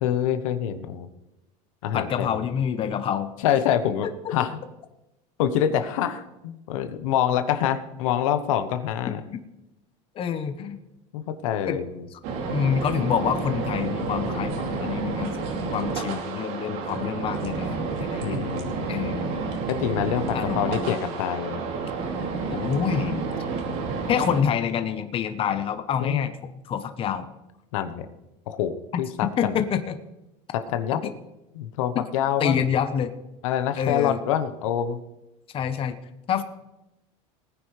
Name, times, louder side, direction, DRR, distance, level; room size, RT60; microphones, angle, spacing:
voice 1, 0.0-1.1 1.8-2.4 3.4-4.6 5.4-9.2 11.1-12.1 18.2-19.1 19.7-21.6 26.0-26.3 27.7-28.1 28.5-29.6 30.5-31.0 31.5-32.7 33.4-35.0, left 10 dB, 85° left, 10 dB, 1.1 m, -26 dB
voice 2, 1.9-3.3 4.0-4.3 9.1-9.4 10.1-10.8 11.7-11.8 12.5-18.4 18.9-19.5 20.3-21.0 22.5-23.2 24.1-26.3 26.7-27.3 29.4-29.9 31.0-31.1 31.9-32.0 32.4-33.1 33.8-34.2 35.5-36.0 36.3-36.4, left 8 dB, 35° left, 9 dB, 1.0 m, -27 dB
sound 1, 12.2-24.4, right 4 dB, 65° right, 2.7 m, -30 dB
19.5 x 9.6 x 3.3 m, 0.94 s
supercardioid pair, 130°, 16 cm